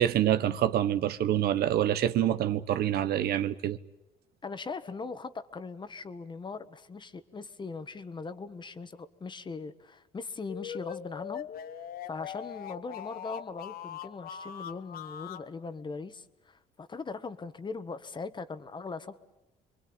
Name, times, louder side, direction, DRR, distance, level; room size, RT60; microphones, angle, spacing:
voice 1, 0.0-3.8, right 11 dB, 70° right, 1.2 m, -26 dB
voice 2, 4.4-11.5 12.1-19.2, left 4 dB, 25° left, 1.5 m, -40 dB
sound 1, 10.5-15.5, left 9 dB, 60° left, 1.3 m, -41 dB
28.0 x 23.5 x 8.8 m
cardioid pair, 110°, 17 cm